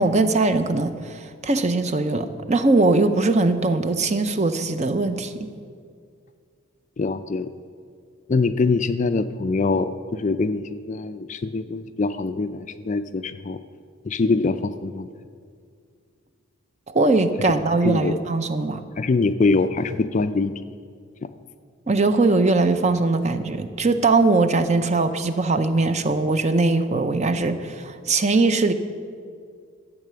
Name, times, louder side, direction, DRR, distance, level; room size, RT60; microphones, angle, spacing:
voice 1, 0.0-5.5 16.9-18.8 21.9-28.7, right 3 dB, 30° right, 10 dB, 0.6 m, -21 dB
voice 2, 7.0-7.5 8.3-13.6 14.1-15.1 17.9-18.2 19.0-20.5, left 3 dB, 35° left, 11 dB, 0.3 m, -23 dB
12.5 x 8.3 x 6.9 m, 2.2 s
head